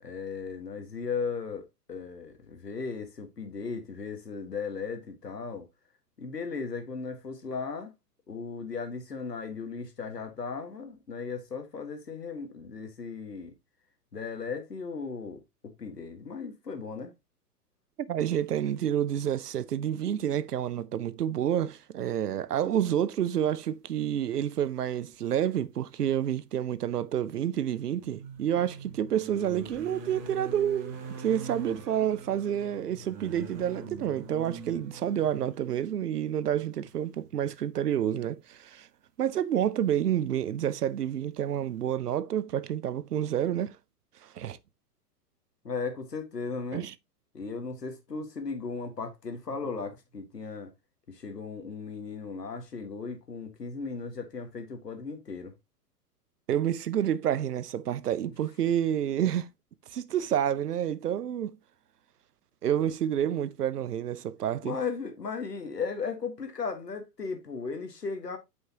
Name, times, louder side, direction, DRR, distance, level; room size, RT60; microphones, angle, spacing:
voice 1, 0.0-5.7 6.2-7.9 8.3-13.5 14.1-15.4 15.8-17.1 45.6-46.9 47.3-50.7 51.1-55.5 62.8-62.9 64.6-68.4, left 5 dB, 85° left, 1.7 m, -36 dB
voice 2, 18.1-38.9 39.2-43.8 44.2-44.6 46.7-46.9 56.5-59.5 59.9-61.6 62.6-64.8, right 10 dB, 75° right, 0.7 m, -29 dB
sound 1, 25.6-25.7 27.9-35.6 36.8-36.9 37.2-37.4, right 4 dB, 10° right, 0.4 m, -43 dB
8.0 x 5.5 x 2.9 m
figure-of-eight pair, 110°, 47 cm